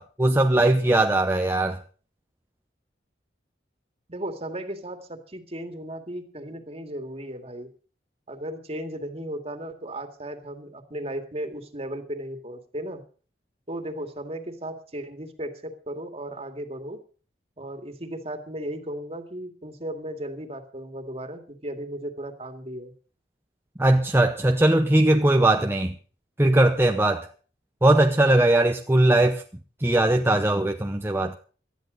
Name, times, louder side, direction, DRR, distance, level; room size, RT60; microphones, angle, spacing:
voice 1, 0.0-1.8 23.8-26.0 26.4-27.3 27.8-29.4 29.8-31.4, right 1 dB, 15° right, 0.7 m, -20 dB
voice 2, 4.1-7.7 8.3-13.0 13.7-17.0 17.6-22.9, right 1 dB, 35° right, 2.2 m, -35 dB
18.5 x 13.0 x 4.0 m
head